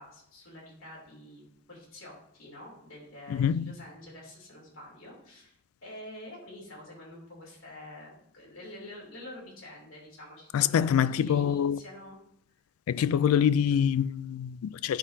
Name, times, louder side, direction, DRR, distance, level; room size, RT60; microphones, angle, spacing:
voice 1, 0.0-5.6 5.8-12.2 13.7-13.8, left 1 dB, 65° left, 3.0 m, -47 dB
voice 2, 3.3-3.8 10.5-11.8 12.9-15.0, left 8 dB, 80° left, 0.3 m, -25 dB
10.0 x 5.5 x 2.7 m
head